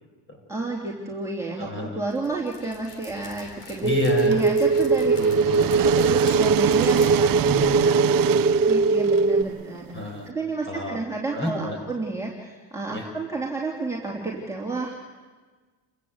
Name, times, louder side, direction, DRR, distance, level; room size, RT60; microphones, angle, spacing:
voice 1, 0.5-3.9 4.2-5.1 5.6-9.9 10.2-14.9, right 3 dB, 5° right, -4 dB, 3.3 m, -31 dB
voice 2, 1.6-2.0 3.8-4.5 5.2-5.7 7.3-8.4 9.9-10.3 10.7-11.0 11.3-11.8 12.9-13.0, left 1 dB, 25° left, 2 dB, 7.3 m, -30 dB
Dog, 2.1-7.9, left 4 dB, 75° left, 4.4 m, -45 dB
sound 1, 3.8-9.4, right 4 dB, 25° right, 1.9 m, -20 dB
sound 2, 4.3-10.2, right 14 dB, 45° right, 0.6 m, -28 dB
29.5 x 15.0 x 8.2 m, 1.4 s
supercardioid pair, 95°, 49 cm